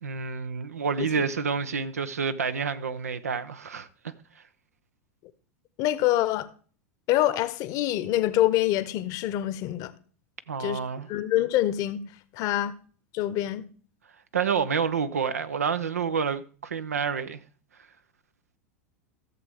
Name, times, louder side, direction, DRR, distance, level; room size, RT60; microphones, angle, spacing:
voice 1, 0.0-3.9 10.5-11.1 14.3-17.4, right 6 dB, 85° right, 0.7 m, -28 dB
voice 2, 5.8-6.5 7.1-9.9 10.6-10.8 11.1-12.0 12.3-12.7 13.1-13.6, left 14 dB, 50° left, 0.9 m, -25 dB
14.5 x 7.1 x 3.6 m
hypercardioid pair, 90°, 8 cm